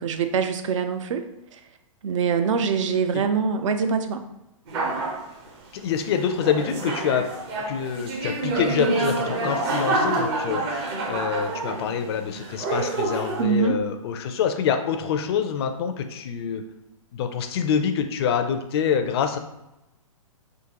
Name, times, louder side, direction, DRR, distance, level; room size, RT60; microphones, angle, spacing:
voice 1, 0.0-1.6 2.0-4.2 13.4-13.8, right 6 dB, 60° right, 8 dB, 0.4 m, -24 dB
sound 1, 4.7-5.2 6.1-12.1 12.4-13.4, right 2 dB, 45° right, 0.8 m, -27 dB
voice 2, 5.8-7.3 7.7-16.6 17.1-19.4, left 7 dB, 45° left, 7 dB, 0.4 m, -26 dB
3.7 x 2.5 x 2.8 m, 0.92 s
hypercardioid pair, 135°, 18 cm